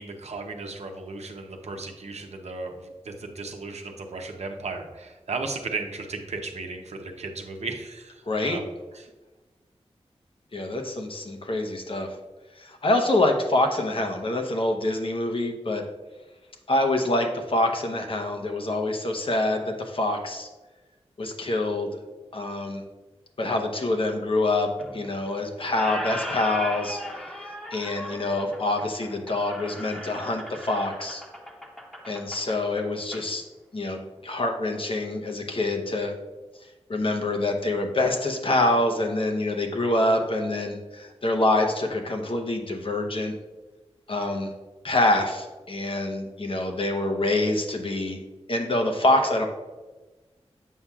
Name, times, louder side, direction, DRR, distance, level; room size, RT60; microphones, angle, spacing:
voice 1, 0.0-8.7 8.9-9.1, right 3 dB, 80° right, 3 dB, 0.7 m, -35 dB
voice 2, 8.3-8.6 10.5-12.1 12.6-15.8 16.7-20.5 21.2-22.0 22.3-22.8 23.4-27.0 27.3-31.2 32.0-33.4 33.7-36.1 36.9-43.3 44.1-44.5 44.8-48.2 48.5-49.5, left 2 dB, 55° left, 3 dB, 0.9 m, -26 dB
Squeak, 24.8-25.3 25.6-33.2, equal, ahead, 1.0 m, -37 dB
7.3 x 5.5 x 2.4 m, 1.2 s
cardioid pair, 55°, 11 cm